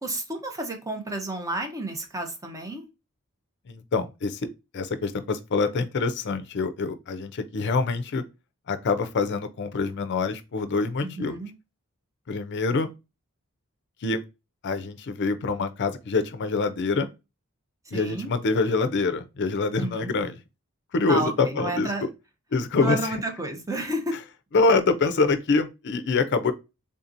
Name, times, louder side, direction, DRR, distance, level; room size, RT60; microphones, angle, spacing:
voice 1, 0.0-2.9 11.0-11.5 17.9-18.3 19.8-20.1 21.1-22.1 22.8-24.1, right 1 dB, 15° right, 0.7 m, -31 dB
voice 2, 3.7-4.4 4.7-8.2 8.7-11.4 12.3-12.9 14.0-14.2 14.6-17.1 17.9-20.4 20.9-21.9 22.5-23.0 24.5-26.5, left 4 dB, 55° left, 0.5 m, -25 dB
3.6 x 2.8 x 2.5 m
head